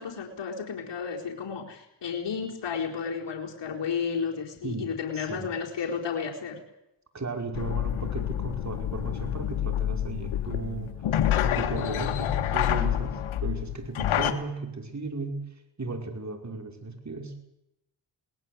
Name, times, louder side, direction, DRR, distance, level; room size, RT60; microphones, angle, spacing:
voice 1, 0.0-6.6, left 6 dB, 60° left, -1 dB, 4.2 m, -32 dB
voice 2, 4.6-5.5 7.1-10.9 11.4-15.5 15.8-17.4, right 3 dB, 35° right, 5 dB, 5.5 m, -35 dB
sound 1, 7.5-14.3, left 11 dB, 75° left, 1.9 m, -28 dB
20.5 x 19.5 x 8.1 m, 0.86 s
supercardioid pair, 50°, 48 cm